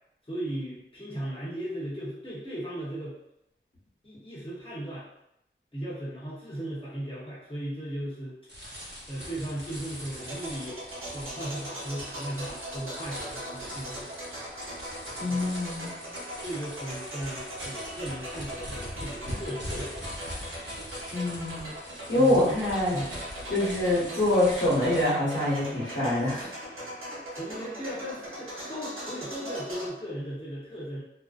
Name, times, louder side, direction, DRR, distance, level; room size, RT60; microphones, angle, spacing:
voice 1, 0.2-3.2 4.0-5.1 5.7-8.4 9.1-10.8 11.1-14.1 15.3-15.7 16.4-20.1 22.1-22.4 22.9-23.1 27.3-31.0, right 1 dB, 25° left, -9 dB, 0.9 m, -37 dB
sound 1, 8.5-25.0, equal, 55° right, 0.9 m, -42 dB
sound 2, 10.2-29.9, equal, 85° right, 0.7 m, -40 dB
voice 2, 15.2-15.9 21.1-21.7 22.1-23.0 23.5-26.5, left 1 dB, 60° left, -8 dB, 1.0 m, -25 dB
2.5 x 2.1 x 2.4 m, 0.83 s
wide cardioid pair, 45°, 21 cm